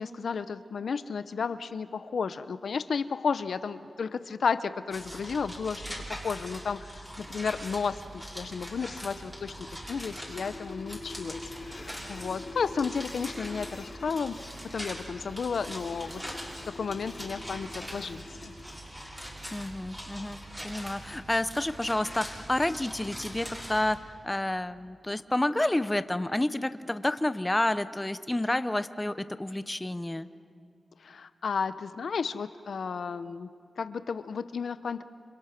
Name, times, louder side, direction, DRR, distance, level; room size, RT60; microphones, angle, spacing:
voice 1, 0.0-5.8 6.1-9.5 9.9-14.4 14.7-16.2 16.7-18.5 31.0-33.5 33.8-35.0, left 5 dB, 75° left, 13 dB, 0.7 m, -33 dB
sound 1, 4.9-24.0, equal, 5° right, 6.0 m, -42 dB
sound 2, 9.4-18.8, left 3 dB, 45° left, 4.0 m, -45 dB
voice 2, 19.5-30.3, left 1 dB, 15° left, 12 dB, 0.7 m, -29 dB
28.5 x 27.0 x 5.9 m, 2.3 s
wide cardioid pair, 100°, 0 cm